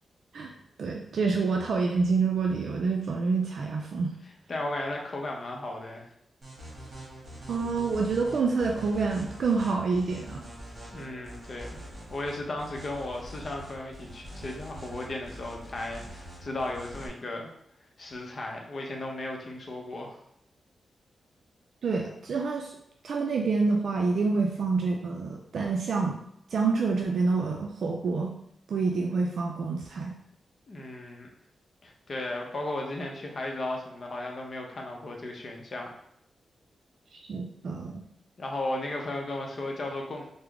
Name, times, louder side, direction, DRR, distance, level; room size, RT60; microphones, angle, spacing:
voice 1, 0.8-4.1 7.5-10.4 21.8-22.7 23.0-26.2 26.5-28.3 28.7-30.1 37.1-38.0, right 4 dB, 70° right, 1 dB, 0.3 m, -27 dB
voice 2, 4.5-6.1 10.9-11.7 12.1-17.5 18.0-20.2 30.7-31.3 31.8-35.9 38.4-40.3, left 2 dB, 45° left, 1 dB, 0.6 m, -35 dB
sound 1, 6.4-17.1, equal, 30° right, 1.3 m, -44 dB
3.6 x 2.0 x 3.4 m, 0.73 s
wide cardioid pair, 130°, 0 cm